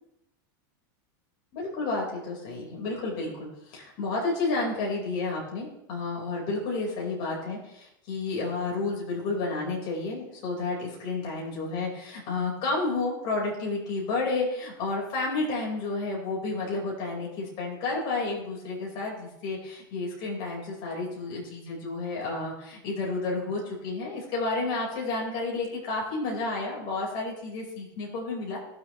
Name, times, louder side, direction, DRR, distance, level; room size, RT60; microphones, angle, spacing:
voice 1, 1.5-28.6, left 3 dB, 50° left, -2 dB, 5.0 m, -31 dB
20.0 x 7.3 x 3.3 m, 0.81 s
supercardioid pair, 130°, 11 cm